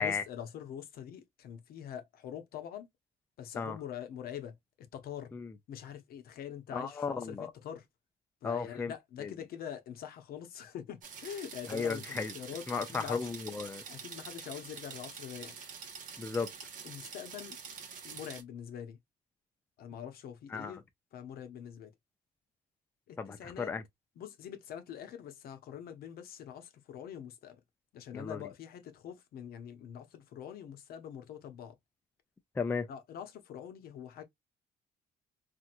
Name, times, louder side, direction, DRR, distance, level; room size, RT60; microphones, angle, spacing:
voice 1, 0.0-2.9 3.4-5.3 5.7-7.9 8.4-13.3 13.9-15.6 16.8-17.6 18.0-19.0 19.8-20.8 21.1-21.9 23.1-23.7 24.2-27.6 27.9-31.8 32.9-34.2, left 9 dB, 65° left, 0.7 m, -44 dB
voice 2, 6.7-7.5 8.4-8.9 9.2-9.3 11.7-12.3 12.7-13.8 16.2-16.5 20.5-20.8 23.2-23.8 28.1-28.4 32.6-32.9, left 5 dB, 10° left, 0.3 m, -34 dB
sound 1, 11.0-18.4, right 6 dB, 50° right, 0.8 m, -46 dB
2.9 x 2.5 x 2.5 m
cardioid pair, 110°, 17 cm